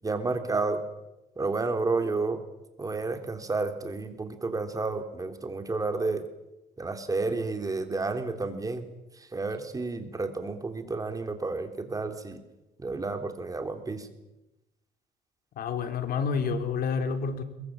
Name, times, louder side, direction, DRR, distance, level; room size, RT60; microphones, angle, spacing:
voice 1, 0.0-0.8 1.4-2.4 2.8-6.3 6.8-8.9 9.2-12.4 12.8-14.1, right 3 dB, 20° right, 6 dB, 3.5 m, -31 dB
voice 2, 15.6-17.4, left 5 dB, 60° left, 7 dB, 3.7 m, -29 dB
22.5 x 22.0 x 8.8 m, 0.99 s
cardioid pair, 110°, 17 cm